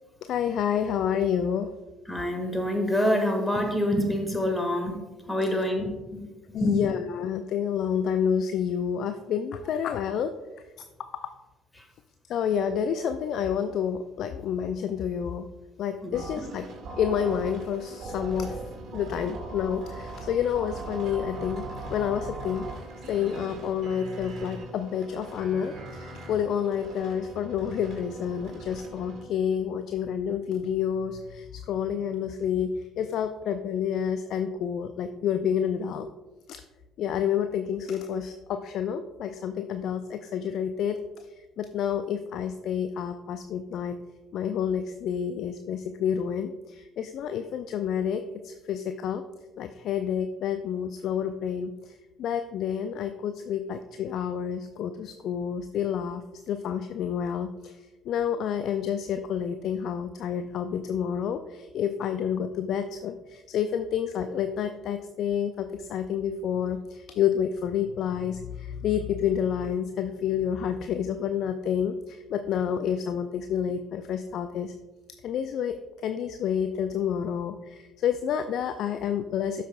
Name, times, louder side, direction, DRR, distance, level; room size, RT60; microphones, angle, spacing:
voice 1, 0.2-1.7 6.5-10.3 12.3-15.5 15.8-16.7 17.0-18.6 18.9-21.6 21.9-22.7 23.1-36.1 36.5-36.6 37.0-41.3 41.6-44.0 44.3-49.2 49.6-74.7 75.2-79.6, left 8 dB, 60° left, 9 dB, 0.3 m, -29 dB
voice 2, 2.1-5.0 5.3-6.8 11.8-11.9 16.0-16.5, left 1 dB, 10° left, 3 dB, 1.8 m, -27 dB
sound 1, 16.1-29.2, right 2 dB, 50° right, 2.0 m, -40 dB
12.0 x 5.6 x 2.4 m, 1.2 s
figure-of-eight pair, 50°, 0 cm